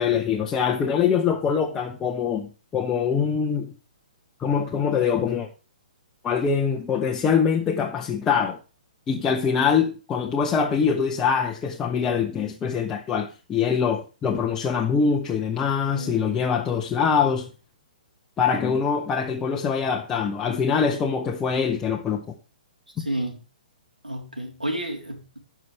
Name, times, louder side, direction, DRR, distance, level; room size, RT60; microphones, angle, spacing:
voice 1, 0.0-3.7 4.4-5.5 6.2-8.6 9.1-17.5 18.4-22.3 23.0-23.1, left 6 dB, 15° left, 1.1 m, -24 dB
voice 2, 15.9-16.3 23.0-23.4 24.0-25.4, right 1 dB, 90° right, 3.7 m, -31 dB
17.5 x 6.1 x 3.3 m
figure-of-eight pair, 125°, 4 cm